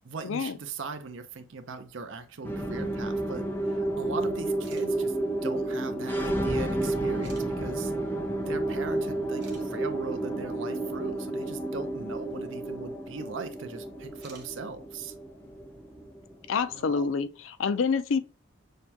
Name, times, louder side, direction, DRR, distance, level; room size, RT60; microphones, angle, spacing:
voice 1, 0.0-5.2 5.4-7.9 8.5-15.1 16.7-17.0, right 4 dB, 65° right, 0.6 m, -39 dB
sound 1, 2.4-17.0, right 1 dB, 10° left, 0.5 m, -31 dB
sound 2, 4.5-4.9 5.9-6.0 7.2-7.5 8.9-9.0 9.4-9.6 12.3-12.4 14.1-14.5, right 6 dB, 50° right, 1.0 m, -51 dB
voice 2, 16.5-18.2, left 5 dB, 70° left, 0.4 m, -27 dB
6.5 x 2.2 x 2.8 m
head